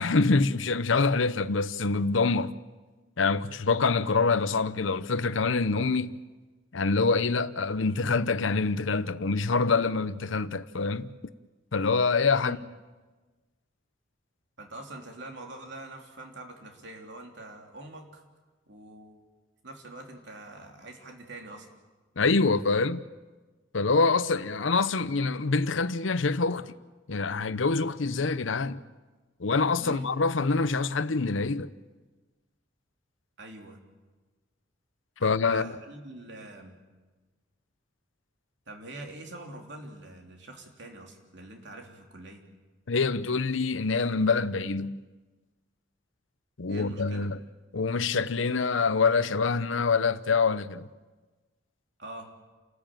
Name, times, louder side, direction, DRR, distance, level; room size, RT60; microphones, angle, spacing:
voice 1, 0.0-2.6 3.2-6.2 6.7-11.1 11.7-12.6 22.2-23.0 23.7-26.7 27.1-28.8 29.4-31.7 35.2-35.7 42.9-45.0 46.6-47.4 47.7-50.9, left 4 dB, 85° left, 0.8 m, -25 dB
voice 2, 14.6-18.2 18.7-19.3 19.6-21.7 29.8-30.1 33.4-33.8 35.2-36.8 38.7-42.4 46.7-47.3 52.0-52.3, right 2 dB, 65° right, 3.5 m, -44 dB
29.0 x 14.0 x 9.2 m
head